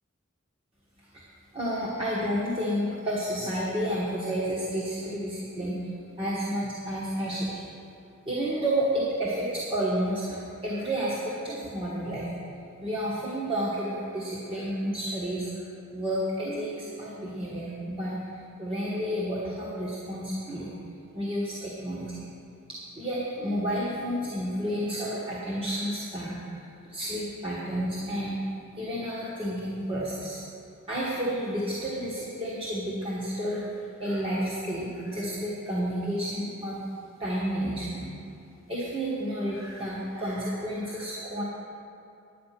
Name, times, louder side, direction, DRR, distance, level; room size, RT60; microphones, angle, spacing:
voice 1, 1.5-5.9 6.2-7.6 8.2-12.3 12.8-15.5 15.9-18.1 18.6-20.7 21.1-22.2 22.7-26.5 26.9-28.4 28.8-30.4 30.9-33.7 34.0-36.8 37.2-38.1 38.7-41.4, equal, 25° right, -8 dB, 1.7 m, -30 dB
10.0 x 9.1 x 5.9 m, 2.6 s
head